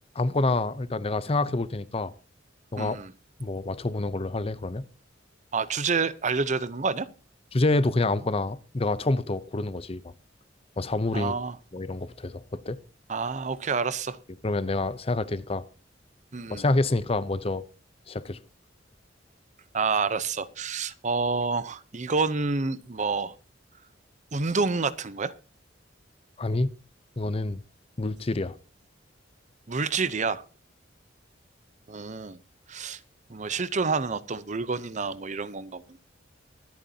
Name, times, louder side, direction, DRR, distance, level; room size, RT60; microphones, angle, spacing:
voice 1, 0.1-2.1 2.7-3.0 3.4-4.8 7.5-10.0 10.8-11.4 11.7-12.8 14.4-15.6 16.5-17.7 18.1-18.4 26.4-26.7 27.2-27.6 28.0-28.6, left 2 dB, 30° left, 0.7 m, -27 dB
voice 2, 2.8-3.1 5.5-7.1 11.1-11.6 13.1-14.2 16.3-16.6 19.7-23.3 24.3-25.3 29.7-30.4 31.9-32.4 32.7-33.0 33.3-36.0, right 4 dB, 40° right, 0.7 m, -28 dB
24.5 x 9.1 x 2.8 m
head